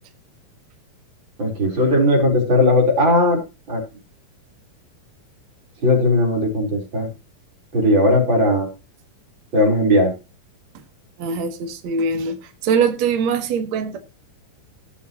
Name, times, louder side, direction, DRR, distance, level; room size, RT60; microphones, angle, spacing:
voice 1, 1.4-3.4 3.7-3.8 5.8-7.1 7.7-8.7 9.5-10.1, left 1 dB, 35° right, 4.5 m, -17 dB
voice 2, 11.2-14.0, right 5 dB, 55° right, 2.8 m, -22 dB
19.5 x 7.3 x 3.0 m
omnidirectional pair, 3.9 m